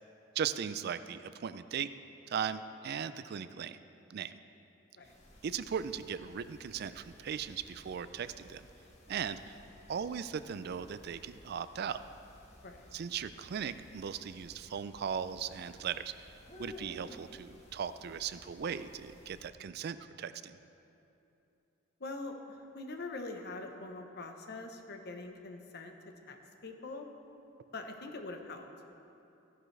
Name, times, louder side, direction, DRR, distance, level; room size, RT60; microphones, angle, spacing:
voice 1, 0.4-1.9 2.3-3.8 4.1-4.3 5.4-8.6 9.1-9.6 9.9-12.0 12.9-16.1 16.6-20.6, right 7 dB, 55° right, 13 dB, 0.4 m, -38 dB
sound 1, 5.0-19.5, left 1 dB, 35° left, 1.4 m, -56 dB
voice 2, 22.0-26.4 26.6-27.1 27.7-28.7, left 3 dB, 55° left, 5 dB, 0.9 m, -43 dB
15.0 x 11.0 x 3.3 m, 2.9 s
head